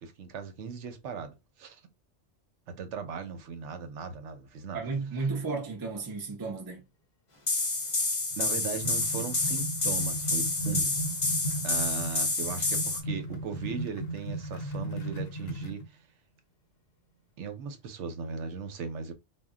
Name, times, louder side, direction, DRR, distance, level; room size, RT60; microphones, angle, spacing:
voice 1, 0.0-1.8 2.7-4.8 8.4-10.9 11.6-15.8 17.4-19.1, right 5 dB, 85° right, 1.0 m, -38 dB
voice 2, 4.7-6.8, right 4 dB, 25° right, 0.5 m, -33 dB
sound 1, 7.5-13.0, left 3 dB, 30° left, 0.7 m, -29 dB
sound 2, 8.3-15.8, right 1 dB, 60° left, 0.8 m, -36 dB
2.3 x 2.1 x 3.6 m
omnidirectional pair, 1.2 m